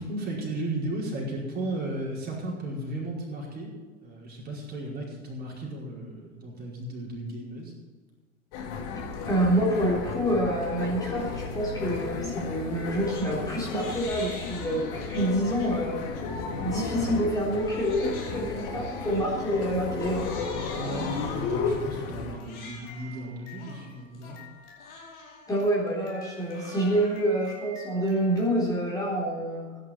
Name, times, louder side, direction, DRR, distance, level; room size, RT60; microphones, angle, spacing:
voice 1, 0.0-3.7 4.0-7.7 16.5-16.7 20.7-24.4, right 1 dB, 25° right, -4 dB, 5.0 m, -35 dB
sound 1, 8.5-22.4, left 5 dB, 45° left, 2.7 m, -33 dB
voice 2, 9.2-16.1 16.6-20.3 25.5-29.7, right 1 dB, 10° left, -6 dB, 3.7 m, -27 dB
Crying sobbing, 12.7-13.3 13.6-15.7 16.2-16.4 17.0-28.9, left 3 dB, 60° left, 4.9 m, -47 dB
16.5 x 10.5 x 4.5 m, 1.4 s
figure-of-eight pair, 95°, 39 cm